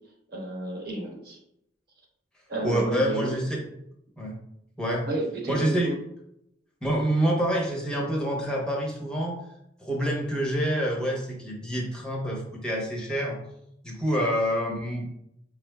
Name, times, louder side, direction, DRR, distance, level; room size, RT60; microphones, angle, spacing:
voice 1, 0.3-1.4 2.5-3.3 5.1-5.9, right 2 dB, 60° right, -2 dB, 1.1 m, -31 dB
voice 2, 2.6-3.6 4.2-4.3 4.8-5.1 5.5-5.9 6.8-9.4 9.8-13.4 13.8-15.1, equal, 5° left, -3 dB, 0.7 m, -27 dB
5.1 x 3.2 x 2.2 m, 0.78 s
head